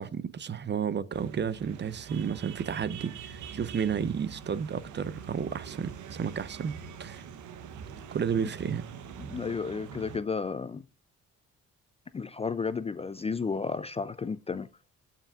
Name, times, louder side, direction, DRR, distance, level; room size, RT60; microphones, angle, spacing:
voice 1, 0.0-7.2 8.1-8.8, right 7 dB, 35° right, 0.6 m, -32 dB
sound 1, 1.1-10.2, right 7 dB, 75° right, 1.0 m, -44 dB
voice 2, 9.2-10.8 12.1-14.7, left 5 dB, 20° left, 0.4 m, -32 dB
14.5 x 5.7 x 2.4 m
cardioid pair, 90°, 30 cm